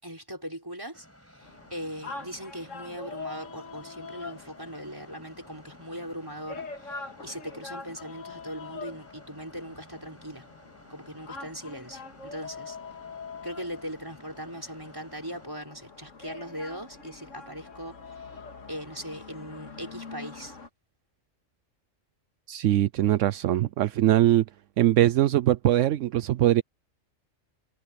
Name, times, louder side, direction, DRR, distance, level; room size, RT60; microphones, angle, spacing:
voice 1, 0.0-10.5 10.9-12.8 13.4-18.4 18.7-20.6, equal, 15° right, 5.8 m, -40 dB
sound 1, 0.9-15.5, equal, 10° left, 6.1 m, -56 dB
sound 2, 1.4-20.7, left 4 dB, 75° left, 2.5 m, -44 dB
voice 2, 22.5-24.4 24.8-26.6, right 13 dB, 75° right, 0.9 m, -22 dB
omnidirectional pair, 1.3 m